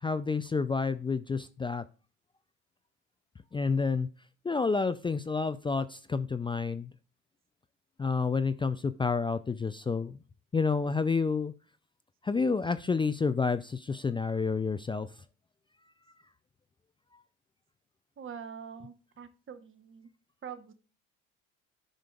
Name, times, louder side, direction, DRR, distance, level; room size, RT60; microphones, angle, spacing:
voice 1, 0.0-1.8 3.5-4.1 4.4-6.9 8.0-10.2 10.5-11.5 12.2-15.1, left 4 dB, 15° left, 12 dB, 0.4 m, -29 dB
voice 2, 18.2-20.1 20.4-20.7, right 7 dB, 35° right, 10 dB, 1.3 m, -44 dB
13.0 x 5.1 x 2.4 m, 0.36 s
hypercardioid pair, 70°, 36 cm